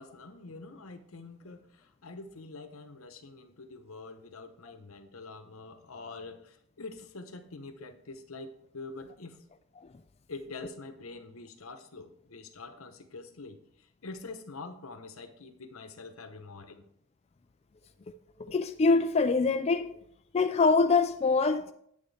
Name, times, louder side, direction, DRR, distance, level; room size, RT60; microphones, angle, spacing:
voice 1, 0.0-9.4 10.3-16.8, left 3 dB, 85° left, 1.0 m, -45 dB
voice 2, 18.4-20.0 20.3-21.7, left 4 dB, 30° left, 0.4 m, -24 dB
9.5 x 8.5 x 3.3 m
head